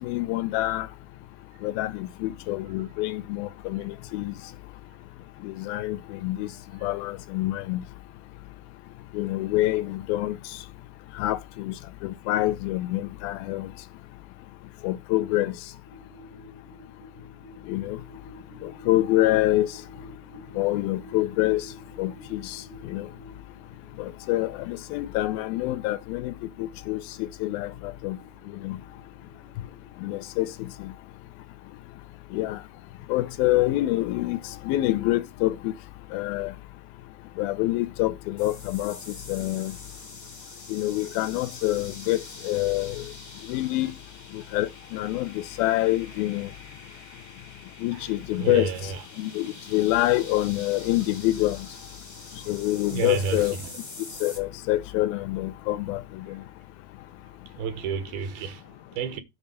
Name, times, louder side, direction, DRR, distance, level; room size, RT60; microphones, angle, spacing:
voice 1, 0.0-0.9 1.6-4.3 5.4-6.5 6.8-7.8 9.1-10.4 11.2-11.7 12.0-13.7 14.8-15.5 17.7-18.0 18.6-19.7 20.6-21.7 22.0-23.1 24.0-26.3 26.6-28.2 28.6-28.8 30.0-30.5 30.8-30.9 32.3-32.6 33.1-34.4 34.7-35.7 36.1-36.5 37.4-39.0 39.3-39.7 40.7-43.0 43.5-43.9 44.3-46.5 47.8-48.7 49.2-51.6 52.5-53.6 54.2-56.4, left 16 dB, 80° left, 2.5 m, -26 dB
sound 1, 15.9-30.9, equal, 35° right, 0.7 m, -51 dB
sound 2, 38.4-54.4, left 2 dB, 25° left, 1.0 m, -45 dB
voice 2, 48.4-49.0 52.9-53.5 57.6-59.2, right 6 dB, 75° right, 2.8 m, -31 dB
10.0 x 4.2 x 6.8 m
omnidirectional pair, 4.3 m